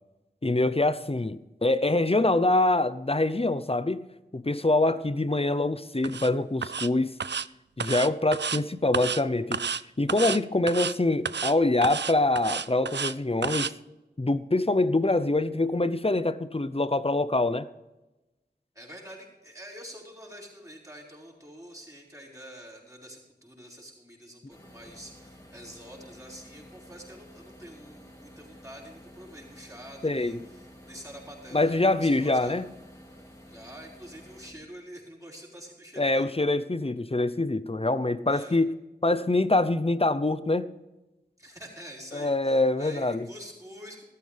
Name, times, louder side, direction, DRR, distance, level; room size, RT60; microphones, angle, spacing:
voice 1, 0.4-4.1 4.3-7.1 7.8-9.6 10.0-13.7 14.2-17.7 30.0-30.4 31.5-32.7 36.0-38.7 39.0-40.7 42.1-43.3, left 2 dB, 30° left, 0.7 m, -25 dB
sound 1, 6.0-6.3 6.6-6.9 7.2-7.5 7.8-8.6 8.9-9.2 9.5-9.8 10.1-10.4 10.7-10.9 11.3-11.5 11.8-13.1 13.4-13.7, right 6 dB, 75° right, 0.4 m, -31 dB
voice 2, 18.8-32.6 33.5-36.5 38.3-38.6 41.4-44.0, equal, 15° right, 5.2 m, -46 dB
sound 2, 24.5-34.5, equal, 15° left, 2.9 m, -51 dB
14.5 x 13.0 x 3.4 m
wide cardioid pair, 45°, 18 cm